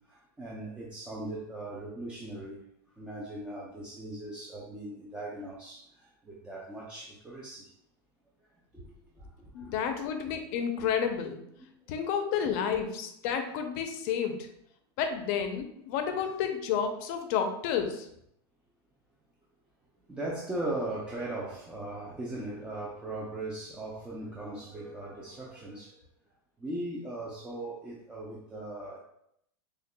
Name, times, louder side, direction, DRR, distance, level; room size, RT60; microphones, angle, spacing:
voice 1, 0.1-2.6 3.0-7.7 8.7-8.8 9.2-9.3 9.6-9.8 10.1-10.3 10.8-10.9 11.6-11.7 12.4-12.6 20.1-26.0 26.6-29.0, right 2 dB, 5° right, -5 dB, 0.4 m, -39 dB
voice 2, 9.5-11.4 11.9-14.5 15.0-18.1, left 7 dB, 45° left, 6 dB, 0.6 m, -31 dB
6.3 x 2.3 x 2.2 m, 0.74 s
supercardioid pair, 155°, 13 cm